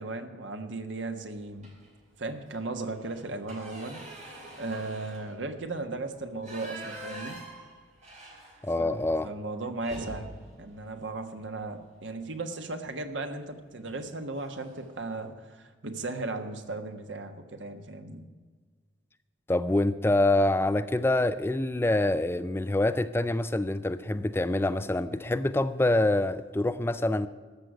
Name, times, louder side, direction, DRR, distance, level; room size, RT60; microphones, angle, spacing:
voice 1, 0.0-1.7 2.2-7.4 8.8-10.3 10.6-18.2, right 2 dB, 80° right, 1.3 m, -36 dB
sound 1, 1.6-2.0 2.4-2.5 2.9-9.0 9.3-9.4 9.8-11.9 13.3-13.5 13.9-14.1 14.3-15.0, right 1 dB, 35° right, 3.1 m, -45 dB
voice 2, 8.6-9.3 19.5-27.3, left 2 dB, 10° left, 0.3 m, -26 dB
14.0 x 6.5 x 9.2 m
head